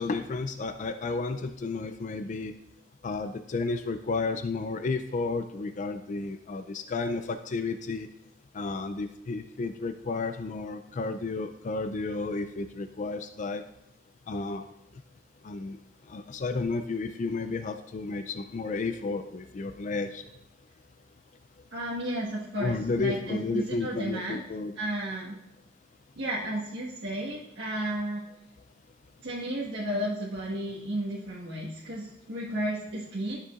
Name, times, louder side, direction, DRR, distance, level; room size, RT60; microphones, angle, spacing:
voice 1, 0.0-2.5 3.0-8.1 8.5-13.6 14.3-14.6 15.4-15.8 16.1-20.2 22.6-24.8, left 3 dB, 45° left, 9 dB, 0.4 m, -32 dB
voice 2, 21.7-24.4 24.8-25.3 26.2-28.2 29.2-33.4, right 1 dB, 75° right, -8 dB, 1.5 m, -33 dB
12.5 x 6.7 x 2.4 m, 0.83 s
head